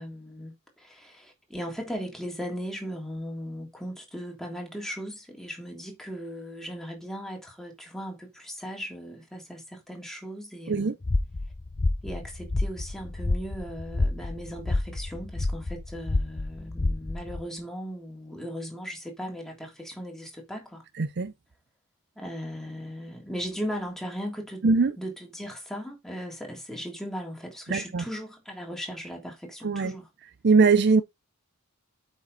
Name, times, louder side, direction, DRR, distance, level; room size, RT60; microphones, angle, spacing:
voice 1, 0.0-10.9 12.0-20.8 22.1-24.7 25.0-30.1, equal, ahead, 3.2 m, -37 dB
sound 1, 11.0-17.4, left 2 dB, 30° left, 0.6 m, -29 dB
voice 2, 21.0-21.3 24.6-24.9 27.7-28.0 29.6-29.9 30.4-31.0, right 4 dB, 50° right, 0.5 m, -21 dB
8.3 x 6.2 x 4.1 m
head